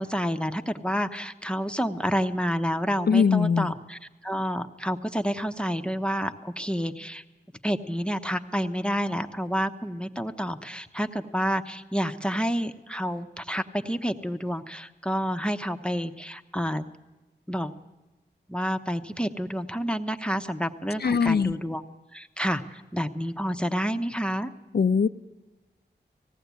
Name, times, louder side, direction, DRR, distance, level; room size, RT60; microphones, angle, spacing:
voice 1, 0.0-7.2 7.6-16.8 17.5-17.7 18.5-21.8 22.1-24.5, equal, 5° left, 8 dB, 0.9 m, -29 dB
voice 2, 3.1-3.7 21.0-21.5 24.7-25.1, left 6 dB, 60° left, 11 dB, 0.6 m, -21 dB
19.5 x 16.5 x 8.3 m, 1.1 s
wide cardioid pair, 65°, 18 cm